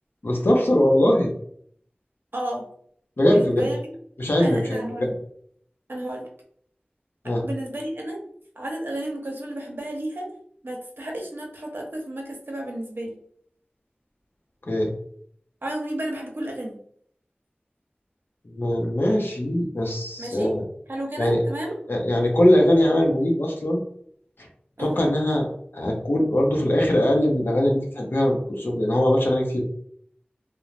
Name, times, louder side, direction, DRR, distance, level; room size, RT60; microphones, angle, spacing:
voice 1, 0.2-1.3 3.2-3.7 4.2-5.1 7.2-7.4 14.7-14.9 18.4-20.6 21.2-21.4 21.9-23.8 24.4-24.5 24.8-25.5 25.7-29.6, left 1 dB, 70° left, 0 dB, 0.6 m, -21 dB
voice 2, 2.3-2.6 3.3-3.8 4.4-5.1 5.9-6.3 7.4-8.2 8.6-10.3 10.6-13.2 15.6-16.8 20.2-20.5 20.9-21.8 24.8-25.1, right 1 dB, 65° right, 0 dB, 0.7 m, -32 dB
3.1 x 2.0 x 2.5 m, 0.64 s
wide cardioid pair, 45°, 4 cm